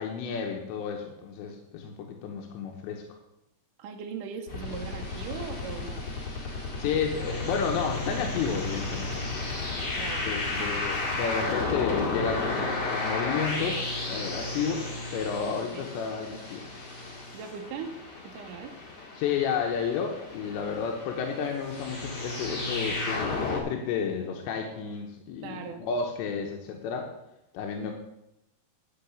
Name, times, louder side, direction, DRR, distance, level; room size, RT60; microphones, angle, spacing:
voice 1, 0.0-3.0 6.8-9.1 10.2-16.6 19.2-27.1 27.5-27.9, left 6 dB, 90° left, 2 dB, 3.2 m, -31 dB
voice 2, 3.8-6.0 9.9-10.8 15.7-15.9 17.3-18.8 25.4-25.8, right 6 dB, 90° right, 4 dB, 1.8 m, -40 dB
sound 1, 4.5-23.6, left 3 dB, 40° left, 1.7 m, -33 dB
10.5 x 5.9 x 6.9 m, 0.85 s
omnidirectional pair, 4.9 m